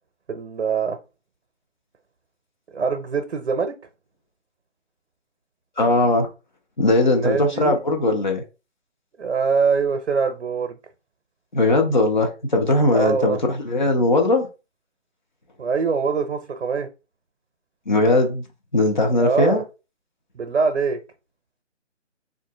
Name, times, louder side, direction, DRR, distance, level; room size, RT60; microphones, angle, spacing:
voice 1, 0.3-1.0 2.7-3.7 7.0-7.8 9.2-10.8 12.9-13.4 15.6-16.9 19.2-19.6 20.3-21.0, right 5 dB, 65° right, 0.7 m, -23 dB
voice 2, 5.8-6.3 6.8-8.4 11.5-14.5 17.9-18.4 18.7-19.6, left 2 dB, 40° left, 0.7 m, -19 dB
2.8 x 2.5 x 3.5 m
figure-of-eight pair, 165°, 37 cm